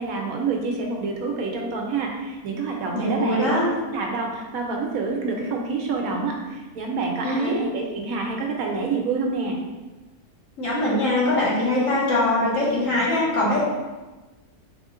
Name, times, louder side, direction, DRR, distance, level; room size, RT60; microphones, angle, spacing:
voice 1, 0.0-9.6, right 4 dB, 75° right, 1 dB, 1.1 m, -27 dB
voice 2, 2.9-3.7 7.2-7.5 10.6-13.6, left 1 dB, 60° left, -6 dB, 1.5 m, -22 dB
3.6 x 3.4 x 3.7 m, 1.2 s
omnidirectional pair, 1.6 m